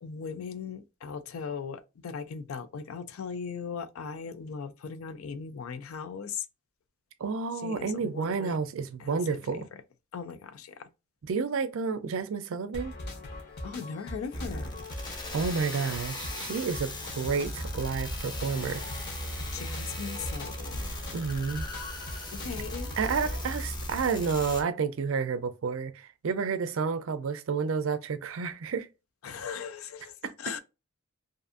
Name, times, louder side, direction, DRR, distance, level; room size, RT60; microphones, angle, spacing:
voice 1, 0.0-6.4 7.6-8.6 9.0-9.6 10.1-10.9 13.6-14.7 19.5-20.9 22.3-22.9 29.2-30.1 30.4-30.6, left 6 dB, 70° left, 0.4 m, -38 dB
voice 2, 7.2-9.7 11.2-12.9 15.3-18.8 21.1-21.7 23.0-28.9 30.2-30.3, right 5 dB, 65° right, 0.4 m, -30 dB
sound 1, 12.7-23.4, left 1 dB, 50° left, 0.8 m, -40 dB
sound 2, 14.3-24.6, left 1 dB, 20° left, 0.6 m, -38 dB
2.6 x 2.5 x 2.4 m
head